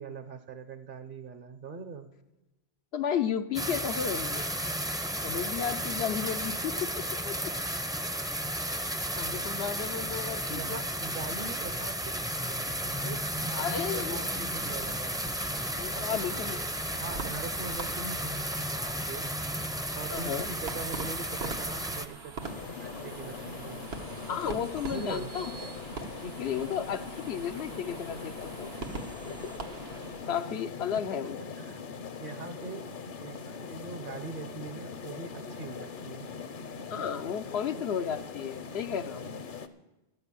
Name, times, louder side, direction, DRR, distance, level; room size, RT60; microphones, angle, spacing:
voice 1, 0.0-2.1 10.5-12.0 12.3-15.2 15.9-16.2 16.9-18.4 18.7-19.3 20.0-22.4 22.8-23.8 24.9-25.3 31.6-31.8 32.2-32.8 33.2-36.3, right 4 dB, 60° right, 10 dB, 0.9 m, -42 dB
voice 2, 2.9-4.5 5.2-7.5 9.1-10.8 13.5-14.2 15.8-16.6 20.1-20.5 24.3-25.5 26.2-28.7 30.3-31.4 36.9-39.2, left 8 dB, 85° left, 9 dB, 1.0 m, -33 dB
sound 1, 3.5-22.1, equal, 5° right, 0.5 m, -33 dB
sound 2, 14.4-30.4, right 4 dB, 90° right, 1.5 m, -43 dB
sound 3, 22.4-39.7, left 5 dB, 55° left, 0.9 m, -41 dB
13.0 x 6.9 x 9.8 m, 1.0 s
omnidirectional pair, 1.0 m